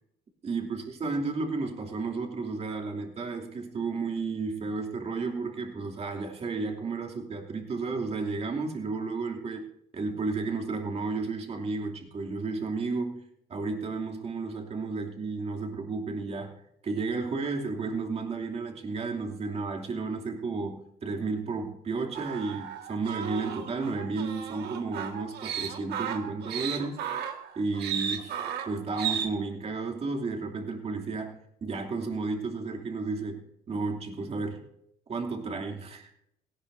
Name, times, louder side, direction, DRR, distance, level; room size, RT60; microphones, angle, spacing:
voice 1, 0.4-9.6 9.9-13.2 13.5-16.5 16.8-27.0 27.5-28.4 28.6-34.6 35.1-36.1, right 4 dB, 40° right, 2 dB, 2.8 m, -32 dB
sound 1, 22.1-29.3, right 8 dB, 75° right, 1.9 m, -34 dB
17.5 x 17.0 x 2.7 m, 0.76 s
cardioid pair, 110°, 17 cm